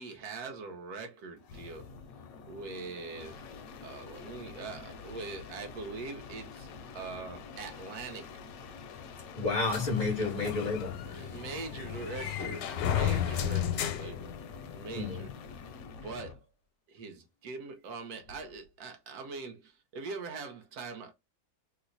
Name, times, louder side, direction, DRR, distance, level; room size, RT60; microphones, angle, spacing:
voice 1, 0.0-1.9 2.5-6.7 6.9-8.3 10.2-10.3 11.1-14.3 14.7-15.3 16.0-16.5 16.9-21.1, right 4 dB, 65° right, 1.2 m, -42 dB
sound 1, 1.4-16.4 18.2-18.7, left 5 dB, 70° left, 0.9 m, -47 dB
voice 2, 9.4-11.4 14.9-15.3, left 3 dB, 45° left, 0.5 m, -31 dB
sound 2, 9.7-15.0, left 9 dB, 85° left, 1.2 m, -34 dB
3.0 x 2.1 x 3.8 m
omnidirectional pair, 1.9 m